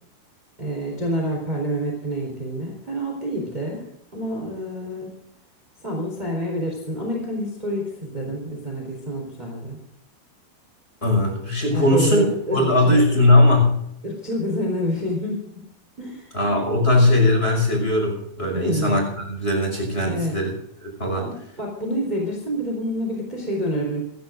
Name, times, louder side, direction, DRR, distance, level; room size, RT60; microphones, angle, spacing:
voice 1, 0.6-3.9 4.1-5.1 5.8-9.8 11.7-13.0 14.0-15.6 16.0-16.3 18.5-19.0 20.1-20.4 21.1-24.0, equal, 10° right, -2 dB, 3.7 m, -28 dB
voice 2, 11.0-13.8 16.3-20.5 20.8-21.2, left 1 dB, 15° left, 1 dB, 5.8 m, -19 dB
28.0 x 14.5 x 2.6 m, 0.76 s
omnidirectional pair, 4.6 m